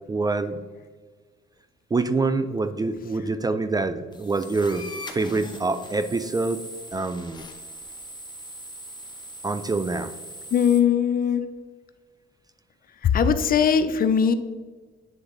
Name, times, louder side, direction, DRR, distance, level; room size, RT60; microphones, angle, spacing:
voice 1, 0.1-0.6 1.9-4.9 5.1-6.6 6.9-7.4 9.4-10.1, right 3 dB, 20° right, 11 dB, 0.3 m, -25 dB
sound 1, 4.1-10.8, equal, 20° left, 0.8 m, -41 dB
voice 2, 10.5-11.4 13.0-14.3, left 7 dB, 45° left, 11 dB, 0.5 m, -20 dB
7.8 x 3.6 x 3.8 m, 1.4 s
cardioid pair, 90°, 20 cm